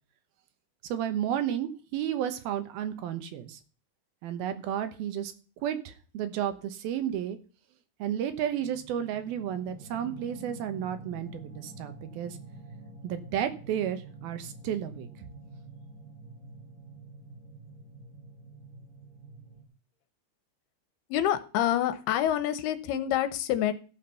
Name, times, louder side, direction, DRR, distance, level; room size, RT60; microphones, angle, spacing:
voice 1, 0.8-3.6 4.2-5.3 5.6-7.4 8.0-12.4 13.0-15.3, right 10 dB, 75° right, 9 dB, 2.8 m, -32 dB
sound 1, 8.6-19.6, right 2 dB, 15° right, 1.8 m, -47 dB
voice 2, 21.1-23.7, left 11 dB, 80° left, 12 dB, 2.9 m, -27 dB
14.0 x 5.9 x 5.7 m, 0.38 s
omnidirectional pair, 4.6 m